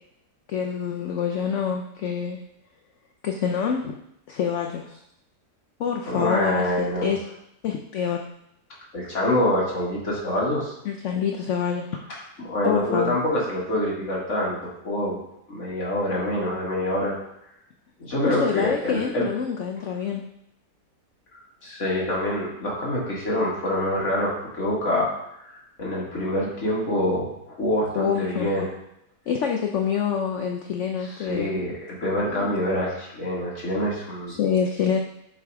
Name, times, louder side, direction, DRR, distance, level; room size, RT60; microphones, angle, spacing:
voice 1, 0.5-2.4 3.2-3.9 4.3-5.0 5.8-7.2 7.6-8.2 10.8-11.9 12.6-13.2 18.3-20.2 28.0-28.7 29.3-31.5 32.3-32.5 34.3-35.0, left 7 dB, 65° left, 2 dB, 0.7 m, -26 dB
voice 2, 6.1-7.1 8.9-10.7 12.1-15.2 15.5-17.2 18.0-19.2 21.6-28.7 31.0-34.4, left 1 dB, 45° left, -5 dB, 2.2 m, -26 dB
7.6 x 3.5 x 4.6 m, 0.79 s
omnidirectional pair, 1.8 m